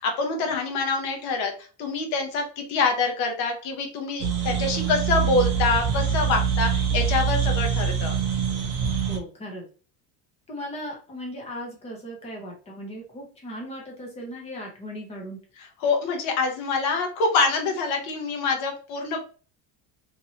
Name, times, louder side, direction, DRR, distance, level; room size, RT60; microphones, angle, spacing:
voice 1, 0.0-8.1 15.8-19.2, left 4 dB, 60° left, 3 dB, 0.8 m, -25 dB
sound 1, 4.2-9.2, right 7 dB, 35° right, 0.5 m, -24 dB
voice 2, 9.1-9.6 10.5-15.4, equal, 15° left, -1 dB, 0.5 m, -37 dB
2.9 x 2.8 x 2.7 m, 0.37 s
cardioid pair, 180°, 47 cm